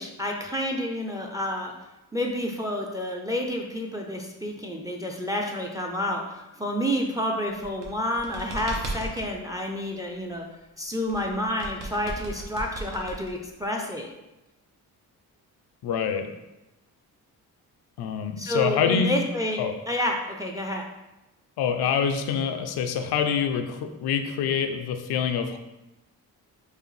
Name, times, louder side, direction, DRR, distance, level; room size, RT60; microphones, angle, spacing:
voice 1, 0.0-1.7 2.1-10.5 10.8-14.1 18.4-20.9, left 1 dB, 10° right, 2 dB, 0.4 m, -29 dB
sound 1, 7.5-9.3 11.1-13.7, right 3 dB, 80° right, 1.0 m, -36 dB
voice 2, 15.8-16.3 18.0-19.2 19.6-19.7 21.6-25.6, left 7 dB, 80° left, 6 dB, 0.5 m, -26 dB
4.7 x 2.5 x 3.2 m, 0.99 s
cardioid pair, 80°, 37 cm